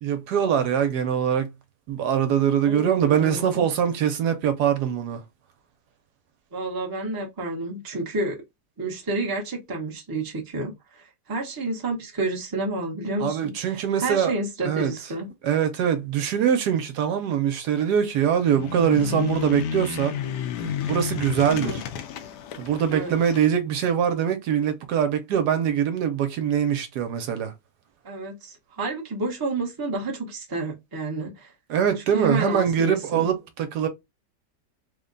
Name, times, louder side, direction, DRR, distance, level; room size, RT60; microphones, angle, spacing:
voice 1, 0.0-1.5 1.9-5.2 13.2-14.3 14.6-14.9 15.4-20.1 20.9-21.8 22.6-27.5 31.7-33.9, right 8 dB, 75° right, 1.2 m, -23 dB
voice 2, 2.6-3.6 6.5-8.4 8.8-15.3 21.5-21.8 22.9-23.1 28.0-31.5 32.1-33.3, right 2 dB, 20° right, 0.6 m, -30 dB
sound 1, 18.5-23.5, left 8 dB, 80° left, 1.2 m, -31 dB
3.4 x 2.2 x 3.7 m
omnidirectional pair, 1.8 m